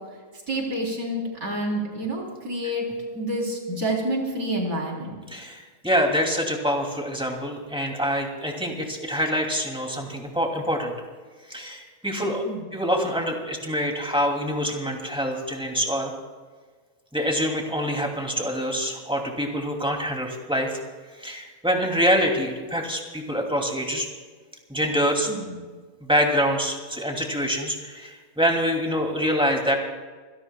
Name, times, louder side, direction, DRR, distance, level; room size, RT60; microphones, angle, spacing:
voice 1, 0.5-2.9 3.1-5.2 12.5-12.6 25.3-25.5, right 1 dB, 75° right, -1 dB, 4.3 m, -28 dB
voice 2, 5.3-10.9 11.5-12.4 12.7-16.1 17.1-20.7 21.2-24.1 24.7-25.3 26.1-29.8, equal, 5° right, 1 dB, 2.7 m, -25 dB
29.0 x 17.5 x 2.3 m, 1.5 s
omnidirectional pair, 1.6 m